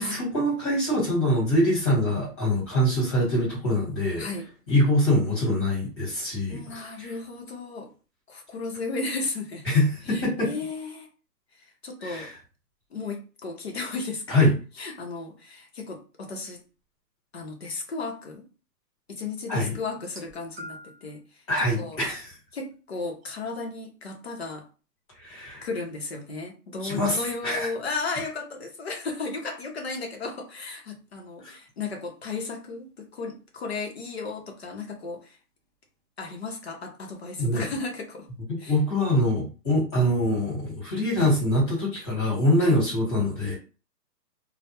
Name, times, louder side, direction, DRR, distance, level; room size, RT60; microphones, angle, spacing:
voice 1, 0.0-4.3 4.7-6.6 7.0-7.1 9.6-10.5 12.0-12.3 14.3-14.6 19.5-19.7 21.5-22.3 25.2-25.6 26.8-27.7 31.4-31.5 37.4-37.7 38.5-43.6, left 1 dB, 15° left, 1.0 m, -24 dB
voice 2, 6.5-7.9 8.3-9.7 10.1-11.1 11.8-12.3 12.9-14.5 14.8-16.6 17.3-18.5 19.1-21.2 21.8-22.0 22.5-24.6 25.6-35.4 36.2-38.3 38.6-38.8 42.6-42.8, left 3 dB, 40° left, 0.5 m, -34 dB
sound 1, 19.9-21.1 22.0-22.2 23.2-23.3, equal, 40° right, 0.7 m, -44 dB
2.2 x 2.0 x 2.8 m
hypercardioid pair, 165°, 49 cm